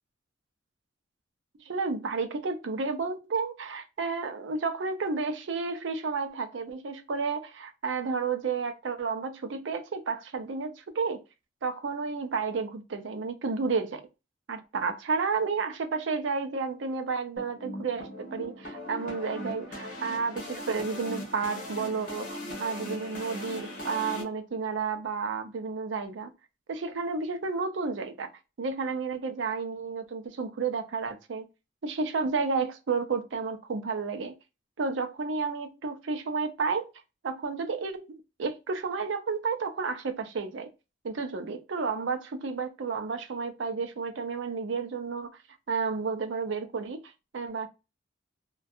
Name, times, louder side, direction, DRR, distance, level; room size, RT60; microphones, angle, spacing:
voice 1, 1.6-11.2 11.6-14.0 14.5-26.3 26.7-28.3 28.6-31.5 31.8-34.3 34.8-36.9 37.2-40.7 41.0-45.4 45.7-47.7, right 4 dB, 75° right, 0.5 m, -31 dB
sound 1, 17.4-24.2, left 1 dB, 45° left, 1.0 m, -39 dB
2.6 x 2.2 x 2.3 m
head